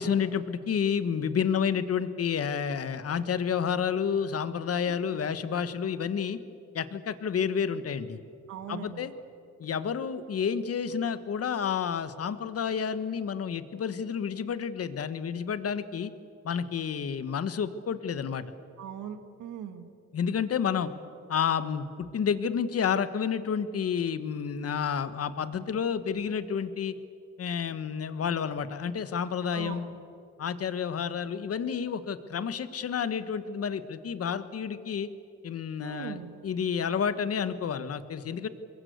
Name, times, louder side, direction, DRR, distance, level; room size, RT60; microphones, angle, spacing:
voice 1, 0.0-6.4 6.7-8.2 8.7-9.1 9.6-16.1 16.4-18.4 20.1-20.9 21.3-21.8 22.1-26.9 27.4-29.9 30.4-35.1 35.4-38.5, left 7 dB, 50° left, 12 dB, 1.5 m, -30 dB
voice 2, 8.5-9.1 18.8-19.9 29.5-30.0 35.8-36.3, right 9 dB, 80° right, 8 dB, 2.2 m, -40 dB
25.5 x 22.0 x 8.2 m, 2.4 s
cardioid pair, 90°, 30 cm